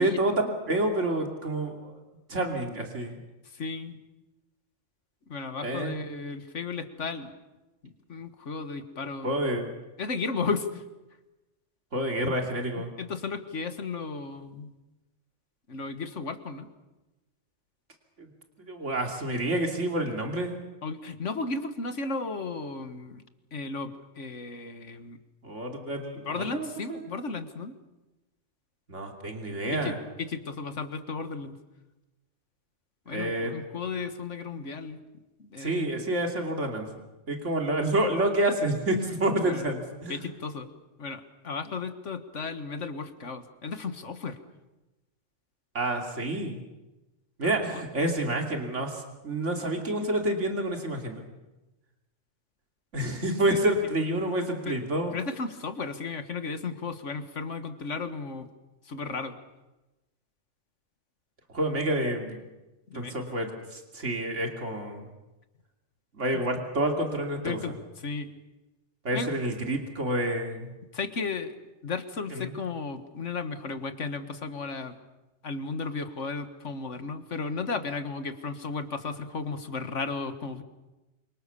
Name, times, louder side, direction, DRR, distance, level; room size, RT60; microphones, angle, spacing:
voice 1, 0.0-2.0 2.3-3.2 5.6-5.9 9.2-9.7 11.9-12.9 18.2-18.3 18.6-20.6 25.4-27.1 28.9-30.0 33.1-33.5 35.6-36.9 37.3-40.2 45.7-46.6 47.4-51.2 52.9-55.1 61.5-62.4 62.9-65.1 66.1-67.7 69.0-70.7 72.3-72.5, right 1 dB, 80° right, 3 dB, 3.2 m, -28 dB
voice 2, 3.5-4.0 5.3-7.3 8.1-9.3 10.0-10.8 13.0-14.7 15.7-16.7 20.8-23.2 23.5-25.2 26.3-27.8 29.7-29.9 30.2-31.6 33.1-35.0 35.4-35.9 39.4-39.6 40.1-40.7 41.0-44.4 47.4-47.8 53.5-53.6 54.7-54.8 55.1-58.5 58.9-59.4 62.9-63.3 66.3-66.4 67.4-68.3 69.1-69.3 70.9-71.5 71.8-75.0 75.4-80.6, left 4 dB, 80° left, 9 dB, 2.0 m, -34 dB
28.0 x 25.0 x 7.0 m, 1.0 s
omnidirectional pair, 1.2 m